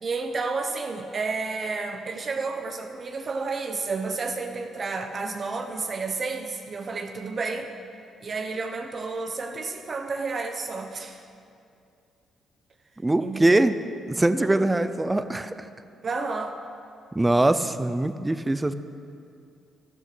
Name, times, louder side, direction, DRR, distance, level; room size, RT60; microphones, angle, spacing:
voice 1, 0.0-7.7 8.2-11.3 13.2-13.6 14.4-14.7 16.0-16.6, right 4 dB, 40° right, 5 dB, 0.8 m, -31 dB
voice 2, 13.0-13.8 14.1-15.7 17.1-18.7, right 2 dB, 15° right, 12 dB, 0.6 m, -22 dB
12.5 x 12.0 x 6.1 m, 2.5 s
cardioid pair, 90°, 0 cm